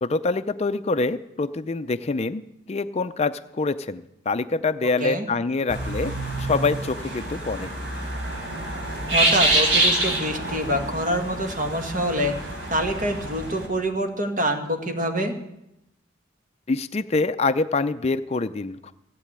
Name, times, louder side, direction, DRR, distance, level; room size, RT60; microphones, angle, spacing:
voice 1, 0.0-2.4 2.7-6.1 6.4-7.7 16.7-18.9, left 3 dB, 35° left, 10 dB, 0.4 m, -25 dB
voice 2, 4.8-5.3 9.1-12.3 12.7-15.4, equal, 45° right, 4 dB, 1.8 m, -26 dB
sound 1, 5.7-13.7, right 1 dB, 80° right, 3.8 m, -26 dB
15.5 x 8.3 x 8.6 m, 0.85 s
head